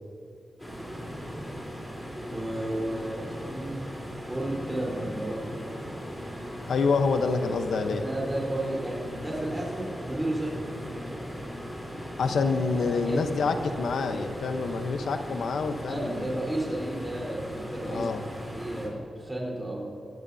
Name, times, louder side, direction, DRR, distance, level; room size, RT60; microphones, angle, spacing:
sound 1, 0.6-18.9, equal, 5° left, 3.6 m, -38 dB
voice 1, 2.3-3.8 4.3-5.6 7.9-10.7 12.9-13.4 15.9-18.1 18.5-19.8, right 1 dB, 10° right, -4 dB, 4.0 m, -33 dB
voice 2, 6.7-8.0 12.2-16.4 17.8-18.2, left 4 dB, 85° left, 7 dB, 0.9 m, -27 dB
24.0 x 15.0 x 2.8 m, 2.8 s
wide cardioid pair, 170°, 0 cm